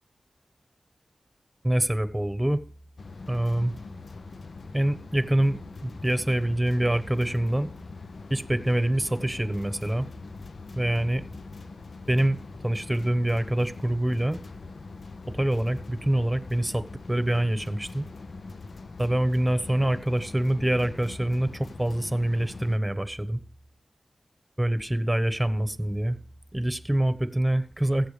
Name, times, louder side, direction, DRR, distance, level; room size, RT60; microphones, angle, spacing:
voice 1, 1.6-2.6 3.3-3.7 4.7-7.7 8.3-10.1 10.7-11.2 12.1-14.4 15.3-18.0 19.0-23.4 24.6-26.2 26.5-28.1, right 1 dB, 15° right, 12 dB, 1.1 m, -25 dB
sound 1, 3.0-22.8, left 3 dB, 80° left, 0.6 m, -42 dB
15.5 x 8.0 x 3.3 m, 0.43 s
cardioid pair, 50°, 0 cm